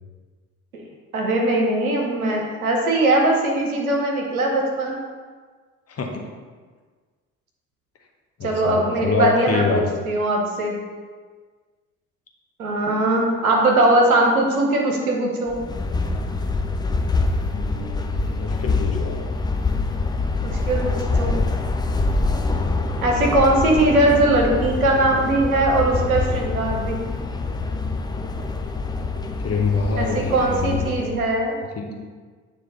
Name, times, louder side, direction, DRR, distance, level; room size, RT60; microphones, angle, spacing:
voice 1, 1.1-5.0 8.4-10.8 12.6-15.6 20.4-21.4 23.0-27.0 30.0-31.6 31.9-32.0, right 1 dB, 85° right, 0 dB, 0.9 m, -20 dB
voice 2, 5.9-6.2 8.4-9.9 17.5-19.2 29.4-31.1 31.8-32.0, left 4 dB, 35° left, 1 dB, 1.0 m, -25 dB
sound 1, 15.5-31.2, left 3 dB, 10° left, 0.4 m, -25 dB
8.6 x 3.2 x 4.0 m, 1.5 s
figure-of-eight pair, 45°, 42 cm